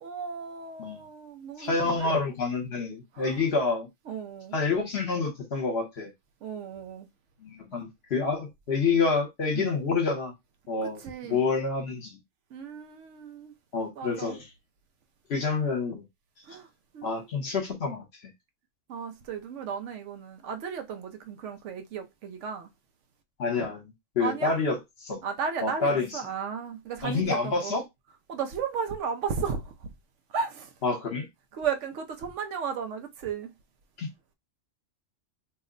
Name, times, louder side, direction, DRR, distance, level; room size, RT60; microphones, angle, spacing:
voice 1, 0.0-2.1 3.1-3.4 4.1-4.6 6.4-7.1 9.5-9.7 10.8-11.4 12.5-13.5 14.0-14.4 16.4-16.7 16.9-17.2 18.9-22.7 24.2-24.6 25.2-27.8 28.3-29.9 30.3-30.7 31.5-33.5, right 6 dB, 70° right, 0.9 m, -34 dB
voice 2, 1.6-3.9 4.5-6.1 7.4-10.3 10.7-12.2 13.7-14.4 15.3-16.0 17.0-18.3 23.4-24.8 25.0-25.2 25.6-26.1 27.0-27.8 30.8-31.3 34.0-34.1, left 4 dB, 55° left, 1.1 m, -28 dB
2.8 x 2.1 x 3.7 m
omnidirectional pair, 1.3 m